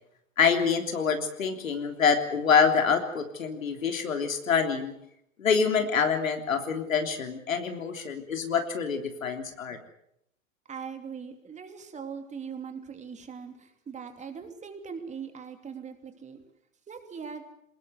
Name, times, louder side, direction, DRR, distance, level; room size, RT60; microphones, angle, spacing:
voice 1, 0.4-4.9 5.4-9.8, left 6 dB, 80° left, 6 dB, 3.5 m, -26 dB
voice 2, 10.7-16.4 16.9-17.4, right 6 dB, 20° right, 6 dB, 2.9 m, -40 dB
23.0 x 20.5 x 7.9 m, 0.73 s
hypercardioid pair, 110°, 39 cm